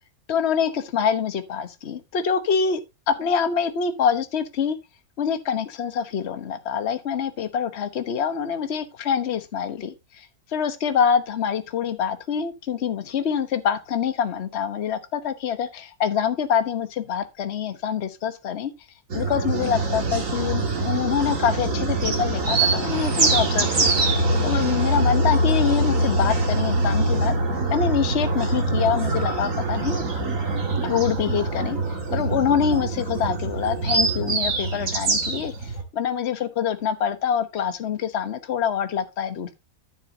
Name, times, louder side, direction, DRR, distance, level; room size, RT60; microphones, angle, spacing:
voice 1, 0.3-2.8 3.1-4.8 5.2-10.3 10.5-18.7 19.1-23.9 24.4-27.3 27.7-30.0 30.8-31.8 32.1-39.5, left 7 dB, 40° left, 1.1 m, -25 dB
sound 1, 19.1-35.8, right 2 dB, 45° right, 2.4 m, -23 dB
13.5 x 7.1 x 2.8 m
omnidirectional pair, 2.0 m